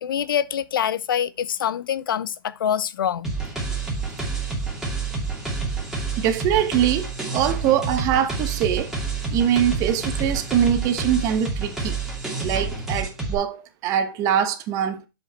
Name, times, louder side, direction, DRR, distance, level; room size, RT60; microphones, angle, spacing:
voice 1, 0.0-3.3, left 9 dB, 80° left, 0.7 m, -25 dB
sound 1, 3.2-13.3, right 4 dB, 5° right, 2.4 m, -28 dB
voice 2, 6.2-8.9 9.3-11.9 12.4-15.0, right 9 dB, 30° right, 1.3 m, -23 dB
7.5 x 5.5 x 4.4 m
hypercardioid pair, 150°, 11 cm